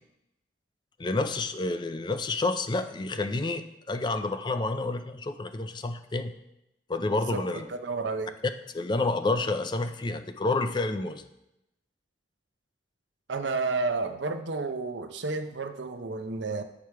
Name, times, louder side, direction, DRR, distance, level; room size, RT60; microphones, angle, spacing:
voice 1, 1.0-6.3 6.9-7.6 8.7-11.2, left 2 dB, 25° left, 9 dB, 0.4 m, -29 dB
voice 2, 7.3-8.3 13.3-16.6, right 3 dB, 85° right, 8 dB, 0.7 m, -31 dB
8.8 x 4.9 x 4.6 m, 0.87 s
head